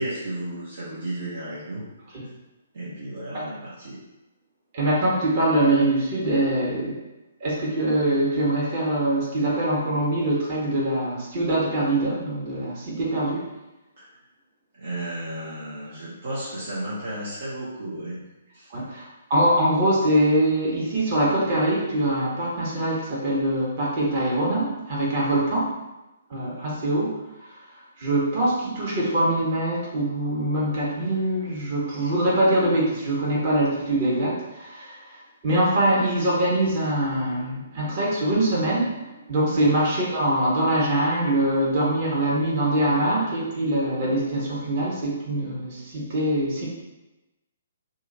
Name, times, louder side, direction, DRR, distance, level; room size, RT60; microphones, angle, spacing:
voice 1, 0.0-1.8 2.7-4.0 14.0-14.1 14.7-18.2 18.5-18.9 39.5-39.7, right 1 dB, 60° right, -7 dB, 0.8 m, -33 dB
voice 2, 4.7-7.0 7.4-13.4 18.7-25.7 26.3-27.2 28.0-35.2 35.4-39.0 39.3-46.7, right 1 dB, 40° right, -6 dB, 1.3 m, -23 dB
2.7 x 2.5 x 4.1 m, 1.0 s
figure-of-eight pair, 130°, 0 cm